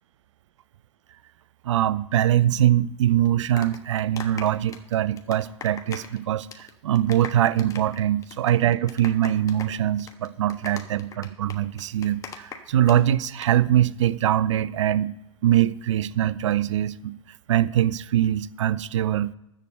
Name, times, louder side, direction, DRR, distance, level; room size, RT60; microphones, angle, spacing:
voice 1, 1.6-15.1 15.4-17.1 17.5-19.3, right 11 dB, 60° right, 0.5 m, -23 dB
sound 1, 3.2-6.2 6.4-6.7 7.0-13.0 13.2-13.5, left 5 dB, 20° left, 1.3 m, -39 dB
13.5 x 4.8 x 7.8 m
figure-of-eight pair, 100°, 17 cm